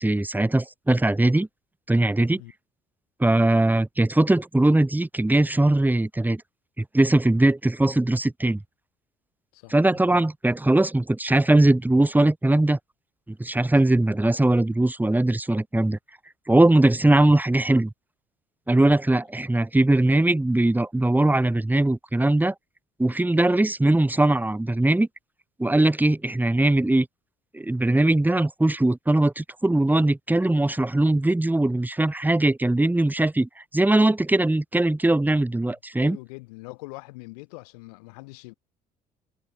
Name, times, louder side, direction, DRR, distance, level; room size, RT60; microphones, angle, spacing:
voice 1, 0.0-1.5 1.9-2.4 3.2-6.4 6.8-8.6 9.7-12.8 13.4-16.0 16.5-17.9 18.7-22.5 23.0-25.1 25.6-27.1 27.5-36.2, right 2 dB, 10° right, 1.4 m, -20 dB
voice 2, 9.5-10.2 13.8-13.9 35.6-38.5, left 26 dB, 80° left, 5.3 m, -43 dB
hypercardioid pair, 55°, 19 cm